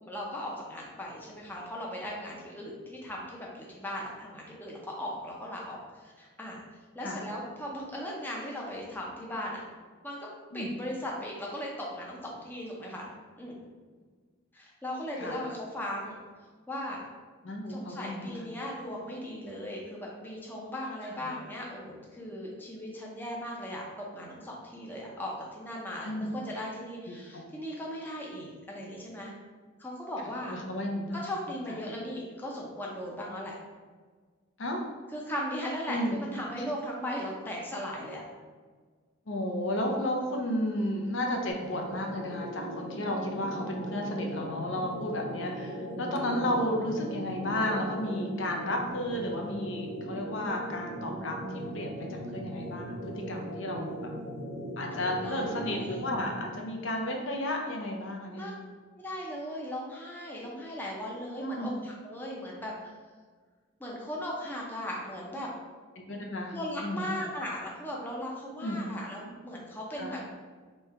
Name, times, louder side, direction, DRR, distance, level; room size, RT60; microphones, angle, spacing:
voice 1, 0.0-6.6 6.9-9.6 10.0-10.2 10.5-13.1 13.4-13.6 14.5-16.2 16.7-17.0 17.7-29.3 29.8-30.6 31.2-33.5 35.1-38.2 54.9-56.0 58.3-58.5 59.0-62.9 63.8-65.5 66.5-70.2, left 1 dB, 10° left, -3 dB, 0.6 m, -38 dB
voice 2, 17.4-18.5 21.2-21.3 26.0-26.3 27.1-27.4 30.5-31.3 34.6-34.8 35.9-36.2 39.3-53.9 54.8-58.5 61.4-61.7 66.1-66.6 66.8-67.1 68.6-68.9 70.0-70.2, left 1 dB, 60° left, 1 dB, 0.6 m, -33 dB
sound 1, 41.5-56.6, equal, 75° right, 0.8 m, -38 dB
3.2 x 3.2 x 4.7 m, 1.5 s
head